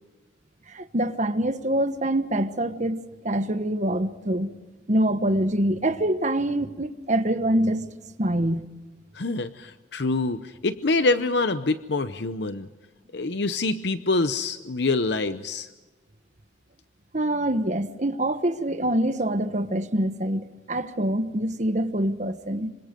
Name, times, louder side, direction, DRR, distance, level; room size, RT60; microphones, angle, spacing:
voice 1, 0.7-4.5 4.9-7.9 8.2-8.7 17.1-22.7, right 1 dB, 40° right, 1.2 m, -25 dB
voice 2, 9.1-12.7 13.1-15.7, left 3 dB, 60° left, 0.7 m, -25 dB
26.5 x 25.0 x 5.2 m
head